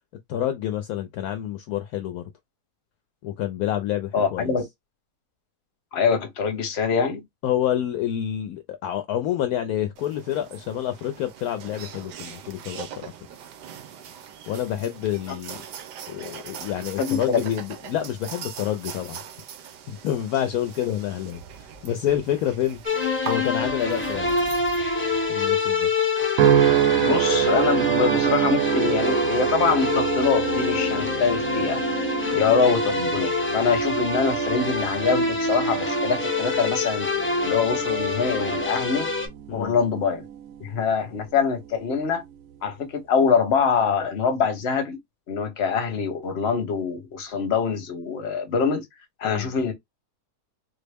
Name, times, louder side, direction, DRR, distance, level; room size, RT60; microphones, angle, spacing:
voice 1, 0.3-2.2 3.2-4.5 7.4-13.0 14.5-15.6 16.1-19.2 19.6-22.8 23.3-24.6 25.3-25.9 39.5-39.7 49.2-49.5, left 11 dB, 70° left, 1.0 m, -28 dB
voice 2, 4.1-4.6 5.9-7.2 15.3-15.4 17.0-17.4 27.0-31.8 32.3-37.1 37.4-39.1 39.5-40.2 40.6-42.2 42.6-45.0 45.3-48.8 49.2-49.7, left 5 dB, 45° left, 1.1 m, -24 dB
sound 1, 10.0-25.3, right 8 dB, 85° right, 1.3 m, -41 dB
sound 2, 22.8-39.3, left 3 dB, 10° left, 0.5 m, -26 dB
sound 3, 26.4-40.9 41.4-41.8, right 11 dB, 70° right, 0.9 m, -27 dB
4.0 x 2.0 x 3.4 m
omnidirectional pair, 1.7 m